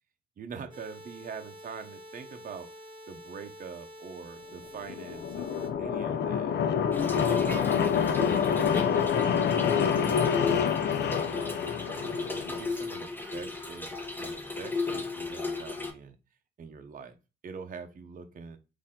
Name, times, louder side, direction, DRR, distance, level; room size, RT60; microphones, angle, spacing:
voice 1, 0.4-2.7 3.1-6.6 7.0-12.0 12.4-13.9 14.2-16.2 16.6-17.2 17.4-18.6, right 6 dB, 45° right, 6 dB, 0.8 m, -44 dB
sound 1, 0.7-5.7, equal, 25° right, 1.5 m, -48 dB
sound 2, 4.8-12.7, left 7 dB, 60° left, 0.6 m, -27 dB
Trickle dribble / Fill (with liquid), 6.9-15.9, left 3 dB, 10° left, 1.0 m, -35 dB
4.3 x 2.7 x 3.6 m, 0.28 s
cardioid pair, 90°, 20 cm